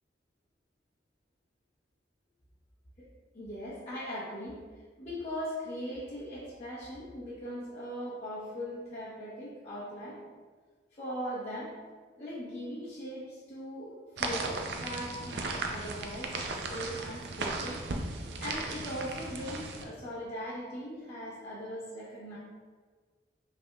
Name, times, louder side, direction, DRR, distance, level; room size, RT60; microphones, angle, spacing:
voice 1, 3.3-4.6 5.0-10.3 10.9-11.7 12.2-17.8 18.4-22.4, equal, 40° left, -11 dB, 0.9 m, -40 dB
sound 1, 14.2-19.8, right 3 dB, 75° right, 0.5 m, -36 dB
5.5 x 3.4 x 2.3 m, 1.5 s
head